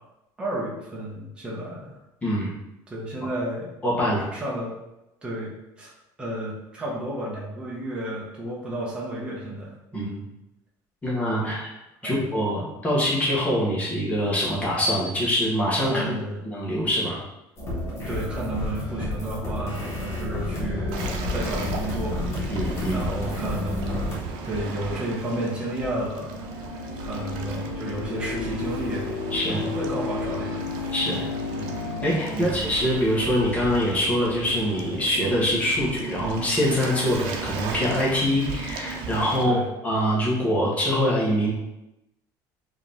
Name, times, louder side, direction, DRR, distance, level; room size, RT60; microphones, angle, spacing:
voice 1, 0.4-2.0 2.9-3.7 4.3-4.7 5.2-5.9 6.2-10.2 11.4-11.6 12.0-12.2 15.9-16.4 18.1-22.3 22.9-24.1 24.4-26.4 27.0-29.0 29.5-30.7 31.5-31.7 32.3-32.7 39.4-39.7, right 1 dB, 10° right, -5 dB, 1.0 m, -32 dB
voice 2, 3.8-4.3 9.9-10.1 11.0-11.7 12.0-16.1 16.4-17.2 22.5-23.0 29.3-29.6 30.9-31.2 32.0-39.6 39.8-41.5, equal, 15° left, -5 dB, 1.4 m, -24 dB
sound 1, 17.6-24.2, left 1 dB, 35° left, 1.6 m, -30 dB
sound 2, 19.0-32.4, left 5 dB, 60° left, 0.4 m, -36 dB
Waves surf, 20.9-39.4, right 4 dB, 75° right, 0.7 m, -36 dB
4.7 x 3.1 x 3.6 m, 0.92 s
cardioid pair, 155°, 9 cm